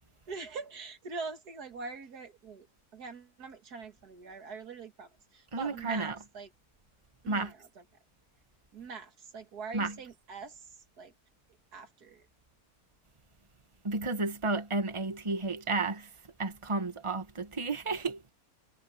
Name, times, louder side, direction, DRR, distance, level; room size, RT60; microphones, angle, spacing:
voice 1, 0.3-2.7 2.9-6.5 7.2-7.8 8.7-10.6 11.0-11.1 11.7-12.3, right 4 dB, 85° right, 2.4 m, -43 dB
voice 2, 5.5-6.2 7.3-7.5 9.7-9.9 13.8-16.1 16.4-18.3, right 3 dB, 20° right, 1.6 m, -32 dB
omnidirectional pair, 1.6 m